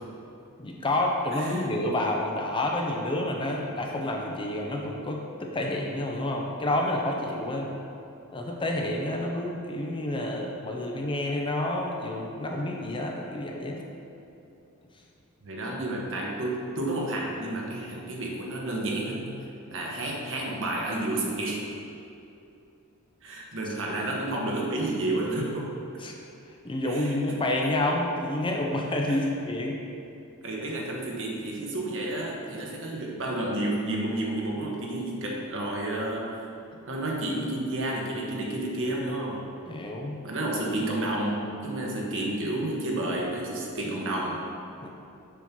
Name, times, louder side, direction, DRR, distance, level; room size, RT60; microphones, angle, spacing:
voice 1, 0.6-7.7 8.3-13.8 26.0-26.1 26.6-29.8 39.7-40.2 44.8-44.9, left 1 dB, 20° left, 0 dB, 0.6 m, -29 dB
voice 2, 1.3-1.6 9.3-9.4 15.4-19.3 19.7-21.7 23.2-25.7 26.8-27.4 27.9-28.0 29.1-29.2 30.4-36.4 36.9-39.4 40.2-44.5, right 1 dB, 60° right, -2 dB, 1.3 m, -31 dB
7.1 x 4.4 x 6.0 m, 2.7 s
head